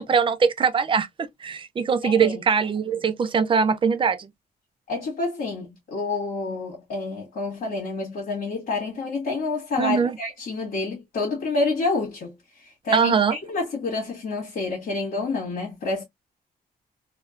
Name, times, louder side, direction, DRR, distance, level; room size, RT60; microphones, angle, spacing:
voice 1, 0.0-4.3 9.8-10.2 12.9-13.4, right 6 dB, 35° right, 0.4 m, -22 dB
voice 2, 2.0-2.4 4.9-16.0, left 3 dB, 65° left, 1.6 m, -28 dB
3.5 x 2.2 x 2.4 m
wide cardioid pair, 150°, 16 cm